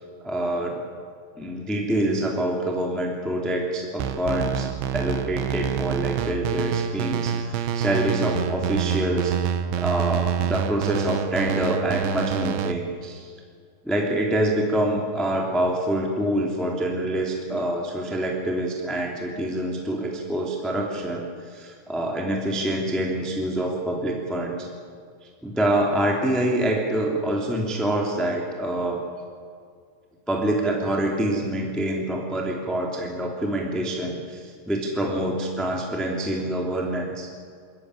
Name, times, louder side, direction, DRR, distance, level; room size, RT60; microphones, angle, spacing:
voice 1, 0.2-0.8 1.4-9.3 9.8-13.3 13.8-24.7 25.4-29.0 30.3-37.3, right 1 dB, ahead, -1 dB, 1.8 m, -26 dB
sound 1, 4.0-12.7, right 8 dB, 90° right, 3.5 m, -27 dB
28.5 x 14.5 x 9.8 m, 2.1 s
omnidirectional pair, 5.3 m